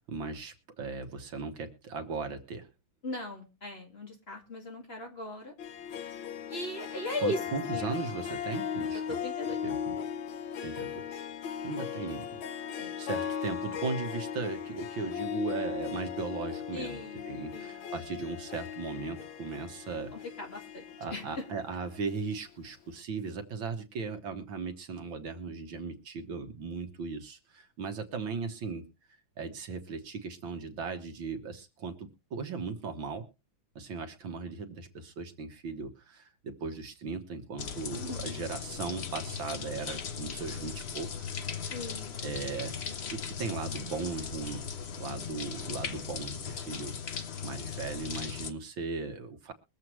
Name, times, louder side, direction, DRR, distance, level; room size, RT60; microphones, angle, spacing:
voice 1, 0.1-2.7 7.2-9.2 9.6-10.0 10.6-11.3 11.6-17.0 17.3-20.1 21.0-28.9 29.4-33.3 33.8-41.3 42.2-47.0 47.4-49.5, right 4 dB, 75° right, 6 dB, 2.1 m, -37 dB
voice 2, 3.0-5.5 6.5-7.4 7.7-7.9 9.1-9.6 12.6-13.0 16.7-17.9 20.1-20.8 21.1-21.4 37.9-38.4 41.7-42.1, left 1 dB, 30° left, 1 dB, 2.3 m, -38 dB
Harp, 5.6-22.4, left 8 dB, 75° left, 1.7 m, -38 dB
sound 1, 37.6-48.5, left 6 dB, 45° left, 0.9 m, -38 dB
23.0 x 7.6 x 3.1 m, 0.29 s
omnidirectional pair, 2.1 m